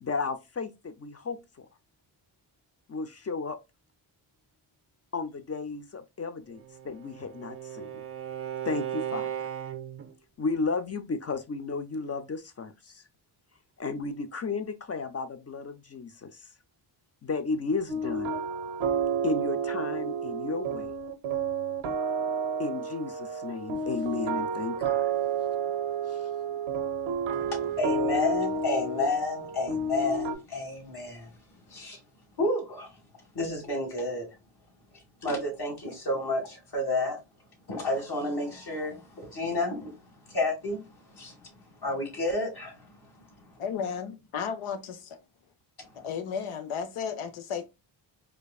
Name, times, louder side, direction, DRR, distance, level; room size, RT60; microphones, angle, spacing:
voice 1, 0.0-1.7 2.9-3.6 5.1-7.9 8.6-9.5 10.4-13.0 13.8-16.5 17.2-18.3 19.2-20.9 22.6-25.1 26.1-26.3, left 4 dB, 30° left, 0.5 m, -33 dB
Bowed string instrument, 6.5-10.1, right 10 dB, 30° right, 0.5 m, -36 dB
sound 1, 17.9-30.3, right 4 dB, 90° right, 0.8 m, -30 dB
voice 2, 27.3-31.3 31.7-32.0 32.4-32.9 33.4-34.2 35.2-37.2 37.7-39.9 40.3-40.8 41.1-41.3 41.8-42.9, left 2 dB, 50° left, 2.0 m, -30 dB
voice 3, 43.6-45.2 46.0-47.7, left 7 dB, 80° left, 0.8 m, -34 dB
4.5 x 2.5 x 2.3 m
cardioid pair, 60°, 49 cm